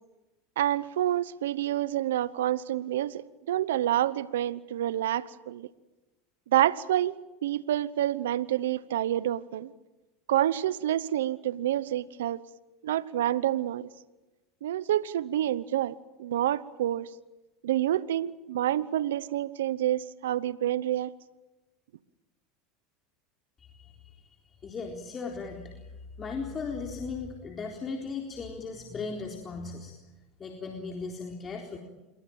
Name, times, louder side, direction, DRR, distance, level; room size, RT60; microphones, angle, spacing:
voice 1, 0.6-5.7 6.5-7.2 7.4-9.7 10.3-12.4 12.8-13.9 14.6-17.1 17.6-21.1, right 12 dB, 85° right, 18 dB, 0.9 m, -28 dB
voice 2, 23.6-24.2 24.6-25.7 26.2-29.9 30.4-31.8, left 4 dB, 30° left, 2 dB, 3.9 m, -37 dB
27.5 x 22.5 x 8.8 m, 1.1 s
hypercardioid pair, 100°, 0 cm